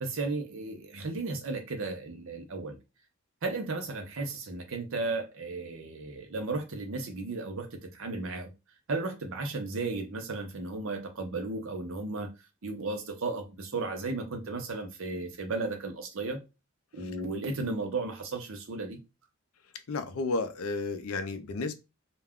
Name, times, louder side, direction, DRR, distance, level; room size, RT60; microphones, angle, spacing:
voice 1, 0.0-2.8 3.4-8.5 8.9-12.3 12.6-16.4 16.9-19.0, right 3 dB, 60° right, 0.6 m, -34 dB
voice 2, 19.9-21.7, left 3 dB, 75° left, 0.5 m, -32 dB
2.3 x 2.2 x 3.5 m
head